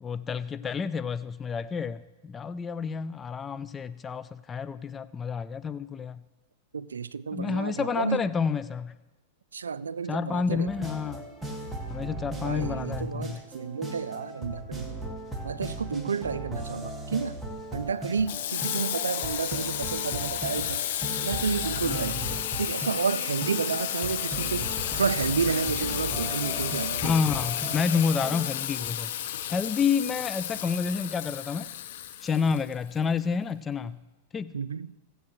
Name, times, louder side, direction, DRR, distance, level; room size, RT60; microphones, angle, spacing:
voice 1, 0.0-6.2 7.3-8.9 10.1-11.2 11.9-13.4 21.8-22.4 27.0-29.1 29.5-31.8 32.2-34.0 34.3-34.6, left 6 dB, 20° left, 0.4 m, -29 dB
voice 2, 6.7-8.2 9.5-10.7 12.4-15.0 15.4-17.4 17.7-20.8 21.2-22.2 22.6-27.1 34.5-34.9, right 5 dB, 90° right, 0.3 m, -31 dB
sound 1, 10.7-28.5, right 1 dB, 10° right, 1.7 m, -37 dB
Water tap faucet / Sink (filling or washing), 18.3-33.0, left 11 dB, 65° left, 0.9 m, -32 dB
17.0 x 7.9 x 3.1 m
hypercardioid pair, 105°, 0 cm